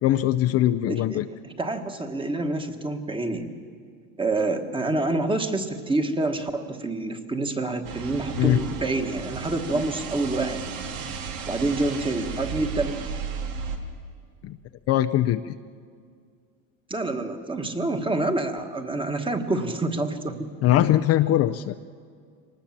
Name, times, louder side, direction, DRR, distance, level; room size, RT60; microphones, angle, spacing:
voice 1, 0.0-1.3 8.4-8.6 9.7-9.8 14.4-14.6 14.9-15.5 20.6-21.7, left 13 dB, 40° left, 9 dB, 0.5 m, -21 dB
voice 2, 0.9-1.2 1.4-3.5 4.2-10.6 11.5-13.0 16.9-20.5, right 2 dB, 15° right, 6 dB, 1.5 m, -27 dB
sound 1, 7.8-13.8, right 6 dB, 80° right, 2.5 m, -34 dB
24.0 x 19.5 x 7.4 m, 2.1 s
cardioid pair, 135°, 38 cm